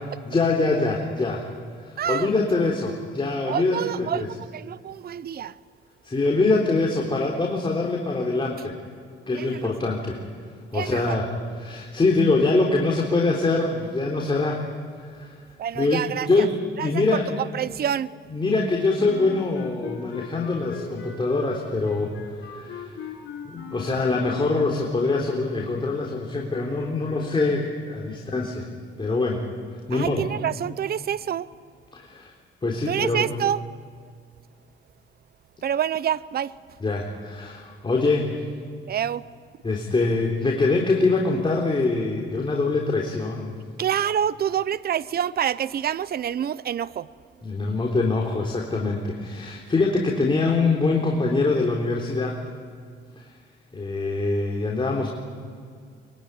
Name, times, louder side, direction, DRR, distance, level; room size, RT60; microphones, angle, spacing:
voice 1, 0.3-1.4 1.8-4.3 6.0-8.7 9.3-10.2 10.7-11.3 11.6-14.6 15.0-15.4 15.8-16.5 16.8-17.2 18.3-22.1 22.4-22.9 23.4-28.7 29.0-29.4 29.9-30.2 31.9-32.3 32.6-33.3 36.8-38.4 39.6-43.5 47.4-52.4 53.2-53.3 53.7-55.1, left 3 dB, 25° left, 3.8 m, -24 dB
voice 2, 2.0-2.3 3.5-5.6 9.3-9.9 10.7-11.2 15.6-16.5 16.8-18.2 29.9-31.5 32.9-33.7 35.6-36.8 38.9-39.3 43.8-47.1, right 9 dB, 50° right, 0.8 m, -27 dB
Wind instrument woodwind instrument, 19.0-25.0, left 7 dB, 70° left, 7.7 m, -39 dB
24.0 x 23.0 x 9.9 m
cardioid pair, 90°, 20 cm